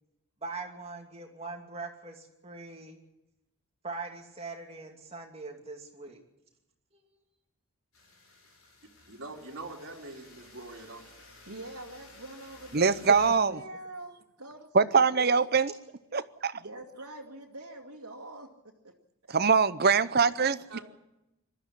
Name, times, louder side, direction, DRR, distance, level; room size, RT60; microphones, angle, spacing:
voice 1, 0.4-3.0 3.8-6.2 6.9-7.0, right 3 dB, 25° right, 2.6 m, -41 dB
sound 1, 7.9-13.3, left 2 dB, 70° left, 6.3 m, -54 dB
voice 2, 9.1-11.2 20.7-20.8, right 2 dB, 60° right, 3.1 m, -43 dB
voice 3, 11.5-13.2 13.5-15.5 16.5-18.5 18.8-19.0 19.3-19.4 20.4-20.8, right 1 dB, 85° right, 2.2 m, -45 dB
voice 4, 12.7-13.6 14.7-15.7 16.1-16.5 19.3-20.8, right 5 dB, 45° right, 0.7 m, -23 dB
21.0 x 13.5 x 9.9 m
head